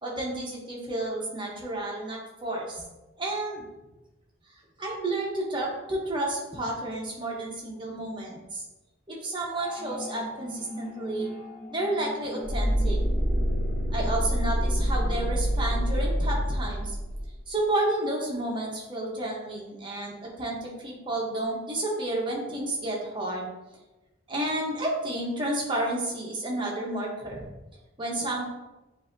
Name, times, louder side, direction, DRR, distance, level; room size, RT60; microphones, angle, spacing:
voice 1, 0.0-2.8 3.2-3.6 4.8-8.6 9.1-11.3 11.7-13.0 13.9-16.9 17.5-23.5 24.3-27.5 28.0-28.4, right 1 dB, 25° right, -2 dB, 0.9 m, -31 dB
sound 1, 9.5-14.1, left 1 dB, 5° left, 0.7 m, -41 dB
sound 2, 12.4-17.3, equal, 50° left, 0.8 m, -26 dB
7.5 x 2.7 x 2.6 m, 1.1 s
head